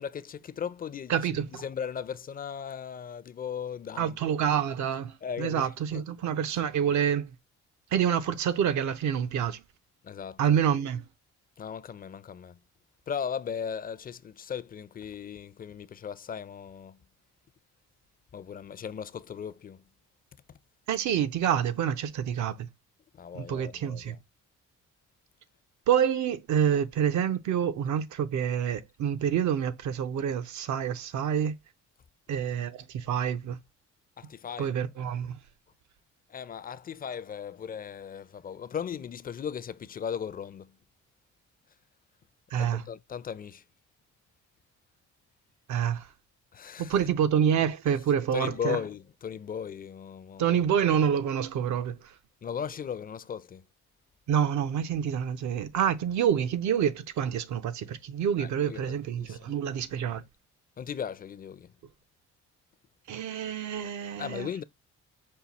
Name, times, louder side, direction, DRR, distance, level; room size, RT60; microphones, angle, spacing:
voice 1, 0.0-4.3 5.2-6.0 6.5-6.6 10.0-10.4 11.6-12.6 13.1-17.0 18.3-19.8 23.1-24.2 34.2-34.8 36.3-40.7 42.6-43.6 46.5-47.0 48.3-50.6 52.4-53.6 58.4-59.5 60.8-61.7 64.2-64.6, left 7 dB, 30° left, 0.4 m, -37 dB
voice 2, 1.1-1.6 4.0-7.3 7.9-9.6 10.4-11.0 20.9-22.7 23.3-24.2 25.9-31.5 32.3-33.6 34.6-35.4 42.5-42.8 45.7-46.1 46.8-48.8 50.4-52.1 54.3-60.2 63.1-64.5, right 8 dB, 70° right, 0.7 m, -27 dB
5.6 x 2.3 x 4.0 m
cardioid pair, 90°, 30 cm